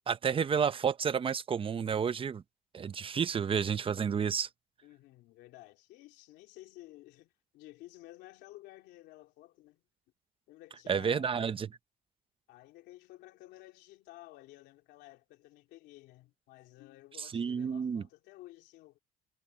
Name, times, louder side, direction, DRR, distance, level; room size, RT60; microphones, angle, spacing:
voice 1, 0.1-2.4 2.7-4.5 10.9-11.7 17.3-18.0, right 7 dB, 30° right, 0.8 m, -30 dB
voice 2, 4.8-9.8 10.5-11.5 12.5-19.0, left 17 dB, 90° left, 3.2 m, -54 dB
cardioid pair, 110°, 17 cm